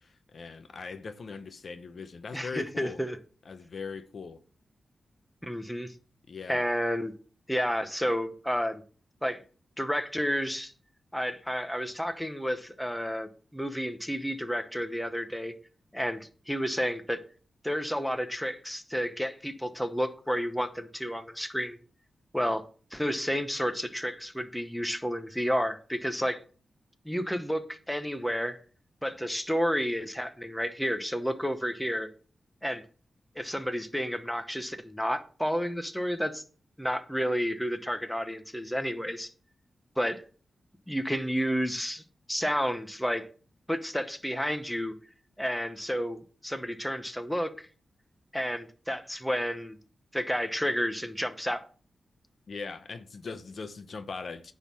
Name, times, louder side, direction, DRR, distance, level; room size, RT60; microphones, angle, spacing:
voice 1, 0.0-3.0 3.5-4.4 6.3-6.7 52.5-54.5, left 4 dB, 60° left, 0.7 m, -40 dB
voice 2, 2.3-3.2 5.4-5.9 6.5-7.1 7.5-8.8 9.2-9.4 9.8-10.7 11.1-15.5 15.9-17.2 17.6-21.8 22.3-22.6 22.9-26.4 27.0-28.6 29.0-32.1 32.6-32.8 33.4-36.4 36.8-39.3 40.0-40.2 40.9-42.0 42.3-43.3 43.7-44.9 45.4-47.5 48.3-49.8 50.1-51.6, equal, 5° left, 0.8 m, -31 dB
9.6 x 3.7 x 6.1 m
wide cardioid pair, 85°, 0 cm